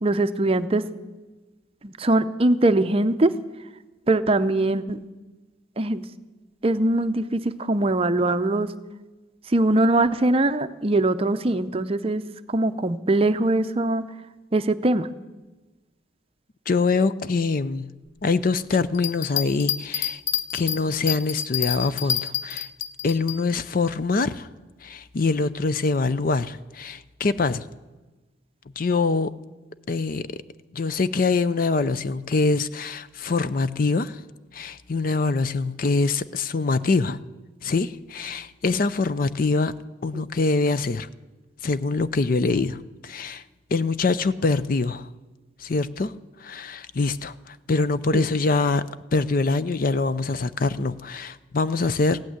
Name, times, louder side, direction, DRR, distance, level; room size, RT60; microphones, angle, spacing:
voice 1, 0.0-0.8 1.8-3.3 4.1-5.0 5.8-6.0 6.6-8.7 9.5-12.2 12.5-14.0 14.5-15.1 40.1-40.2 48.1-48.3, right 2 dB, 30° right, 0.6 m, -22 dB
voice 2, 16.7-17.9 18.2-20.2 20.5-22.7 23.0-24.5 24.8-27.7 28.8-29.3 29.9-30.3 30.7-34.2 34.5-37.2 37.6-39.7 40.0-41.1 41.6-43.4 43.7-45.1 45.6-46.1 46.4-48.8 49.1-52.2, left 3 dB, 45° left, 0.5 m, -24 dB
sound 1, 18.9-23.4, left 9 dB, 85° left, 0.7 m, -28 dB
16.0 x 8.9 x 9.4 m
head